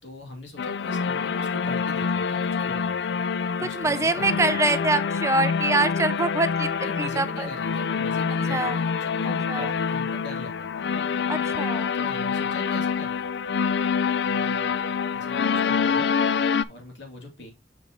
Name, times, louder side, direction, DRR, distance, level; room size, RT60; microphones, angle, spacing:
voice 1, 0.0-3.2 3.6-4.9 6.8-11.0 11.9-13.6 14.2-17.5, left 1 dB, 90° left, 2.6 m, -42 dB
sound 1, 0.6-16.7, left 6 dB, 70° left, 0.4 m, -26 dB
voice 2, 3.7-6.7 7.0-7.5 8.5-8.8 9.5-9.7 11.3-11.9, right 2 dB, 15° right, 0.5 m, -24 dB
7.3 x 5.2 x 3.0 m
head